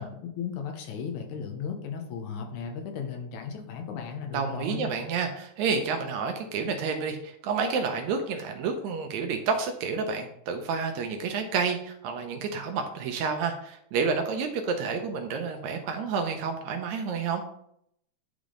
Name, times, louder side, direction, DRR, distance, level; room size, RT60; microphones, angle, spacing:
voice 1, 0.0-4.9, left 6 dB, 75° left, 4 dB, 2.1 m, -35 dB
voice 2, 4.3-17.4, right 5 dB, 75° right, 5 dB, 1.8 m, -29 dB
9.8 x 3.5 x 3.7 m, 0.72 s
omnidirectional pair, 3.6 m